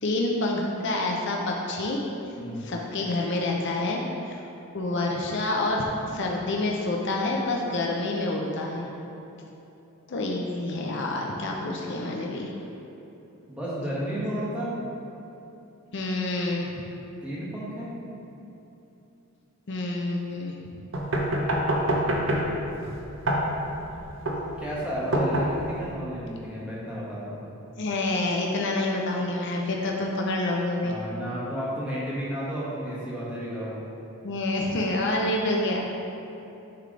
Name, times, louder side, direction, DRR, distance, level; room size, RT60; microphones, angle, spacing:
voice 1, 0.0-2.0 2.6-4.4 4.7-8.9 10.1-12.5 15.9-16.7 19.7-20.5 27.8-31.0 34.2-35.9, left 2 dB, 50° left, -1 dB, 0.5 m, -27 dB
voice 2, 2.3-2.7 13.5-14.8 17.2-17.9 23.8-24.0 24.6-27.4 30.8-33.8, equal, 5° right, -8 dB, 1.3 m, -32 dB
sound 1, 20.9-25.9, right 1 dB, 55° right, 0.7 m, -26 dB
9.8 x 3.4 x 3.8 m, 2.9 s
head